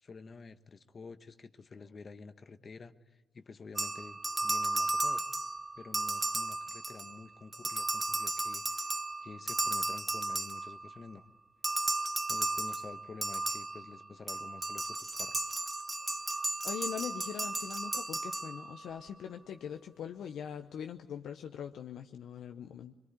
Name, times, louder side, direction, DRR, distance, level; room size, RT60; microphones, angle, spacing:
voice 1, 0.0-5.3 5.8-8.9 9.2-11.3 12.3-15.5, left 4 dB, 45° left, 10 dB, 1.3 m, -49 dB
sound 1, 3.8-7.2 7.5-11.0 11.6-18.9, right 2 dB, 25° right, 1.1 m, -34 dB
voice 2, 16.2-22.9, left 8 dB, 75° left, 6 dB, 0.9 m, -42 dB
22.5 x 22.0 x 9.7 m, 1.1 s
supercardioid pair, 60°, 0 cm